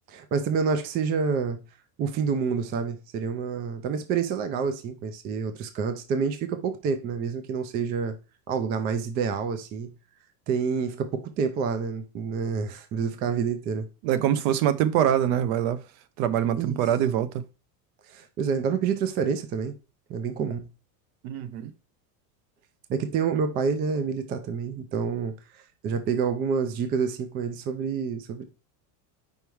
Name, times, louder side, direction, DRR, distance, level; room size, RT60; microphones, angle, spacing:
voice 1, 0.1-1.6 2.0-8.2 8.5-9.9 10.5-13.9 16.6-16.8 18.1-19.7 20.1-20.7 22.9-28.4, right 6 dB, 20° right, 0.3 m, -28 dB
voice 2, 14.0-15.8 16.2-17.3 21.2-21.7, right 10 dB, 60° right, 0.9 m, -24 dB
5.4 x 4.5 x 4.6 m
supercardioid pair, 150°, 48 cm